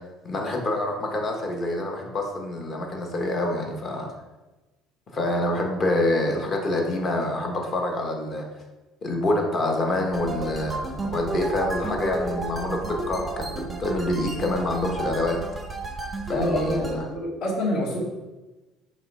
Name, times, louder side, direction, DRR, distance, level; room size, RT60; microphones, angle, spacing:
voice 1, 0.2-4.1 5.1-8.5 9.0-15.4 15.9-17.0, left 1 dB, 30° left, 2 dB, 1.0 m, -26 dB
sound 1, 10.1-17.0, right 2 dB, 10° right, 0.6 m, -32 dB
voice 2, 16.3-18.0, left 1 dB, 60° left, -5 dB, 2.0 m, -26 dB
5.2 x 3.4 x 5.3 m, 1.1 s
cardioid pair, 160°, 0 cm